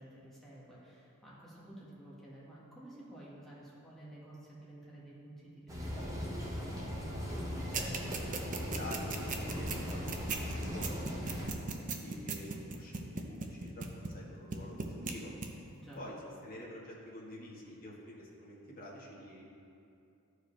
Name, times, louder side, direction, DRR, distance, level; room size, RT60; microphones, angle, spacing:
voice 1, 0.0-6.9 15.7-16.0, right 1 dB, ahead, -8 dB, 1.6 m, -52 dB
sound 1, 5.7-11.5, equal, 15° right, 1.1 m, -38 dB
voice 2, 7.7-10.2 10.5-15.3 16.0-16.1 16.4-19.4, left 1 dB, 40° left, -5 dB, 1.6 m, -48 dB
sound 2, 7.7-14.2 14.5-15.1 15.4-15.5, right 5 dB, 35° right, 0.6 m, -37 dB
13.5 x 4.9 x 3.3 m, 2.6 s
head